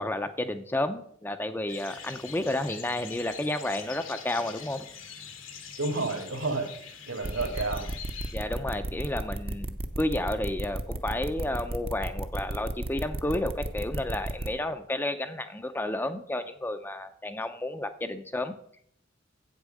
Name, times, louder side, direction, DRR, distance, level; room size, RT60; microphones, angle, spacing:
voice 1, 0.0-4.9 8.3-18.5, left 1 dB, 10° left, 8 dB, 0.5 m, -31 dB
sound 1, 1.7-8.4, left 7 dB, 80° left, 1.5 m, -44 dB
voice 2, 5.8-7.9, right 3 dB, 80° right, 4 dB, 2.3 m, -31 dB
sound 2, 7.2-14.5, right 1 dB, 30° right, 0.6 m, -33 dB
8.2 x 8.0 x 6.4 m, 0.67 s
head